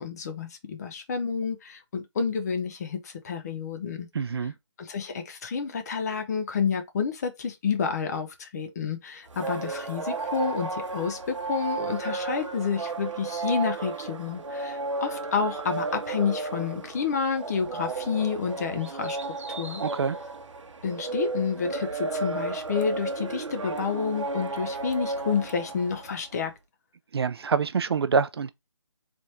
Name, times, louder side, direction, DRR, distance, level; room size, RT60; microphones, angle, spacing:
voice 1, 0.0-4.1 4.8-19.2 19.6-19.8 20.8-26.5, left 6 dB, 35° left, 0.8 m, -29 dB
voice 2, 4.1-4.5 19.8-20.2 27.1-28.5, right 5 dB, 55° right, 0.5 m, -26 dB
sound 1, 9.3-26.3, right 3 dB, 75° right, 0.8 m, -33 dB
3.5 x 2.5 x 4.2 m
figure-of-eight pair, 155°, 16 cm